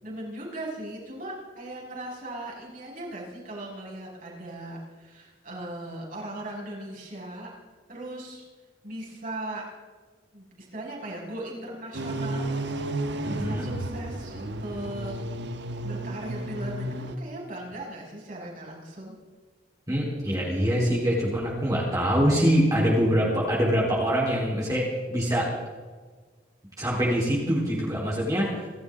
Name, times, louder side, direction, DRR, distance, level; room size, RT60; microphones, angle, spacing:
voice 1, 0.0-7.5 7.9-8.4 8.8-9.6 10.3-15.1 15.8-19.2, right 1 dB, 50° right, -3 dB, 6.5 m, -38 dB
sound 1, 11.9-17.2, right 1 dB, 70° right, 1.2 m, -32 dB
voice 2, 13.2-13.7 19.9-25.5 26.8-28.5, equal, 20° right, -5 dB, 4.0 m, -24 dB
28.0 x 13.0 x 3.8 m, 1.5 s
head